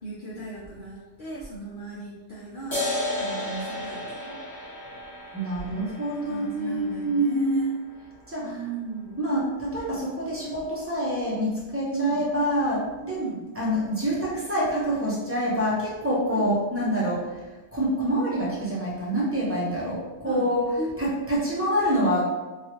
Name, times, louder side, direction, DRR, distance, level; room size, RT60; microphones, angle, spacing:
voice 1, 0.0-2.8 3.2-4.4 6.2-7.7 8.4-9.1 11.9-12.2 13.2-13.4 16.3-16.5 20.2-20.5 20.8-20.9, right 3 dB, 50° left, -7 dB, 0.6 m, -36 dB
sound 1, 2.7-9.7, left 1 dB, 15° left, 0.9 m, -35 dB
voice 2, 5.3-7.7 8.3-8.5 9.2-13.2 13.6-17.3 17.7-20.6 21.0-22.2, equal, 15° right, -7 dB, 0.5 m, -26 dB
2.9 x 2.3 x 2.9 m, 1.1 s
omnidirectional pair, 1.3 m